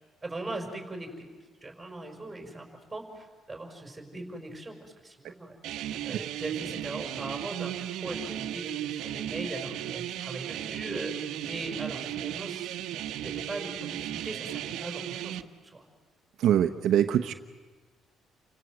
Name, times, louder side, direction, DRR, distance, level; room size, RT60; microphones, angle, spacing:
voice 1, 0.2-1.3 1.6-5.6 6.0-11.1 11.4-12.8 13.2-15.8, right 2 dB, 10° right, 3 dB, 5.5 m, -40 dB
sound 1, 5.6-15.4, right 12 dB, 80° right, 1.1 m, -35 dB
voice 2, 16.4-17.3, right 10 dB, 60° right, 6 dB, 1.0 m, -24 dB
30.0 x 25.0 x 8.0 m, 1.3 s
cardioid pair, 150°, 0 cm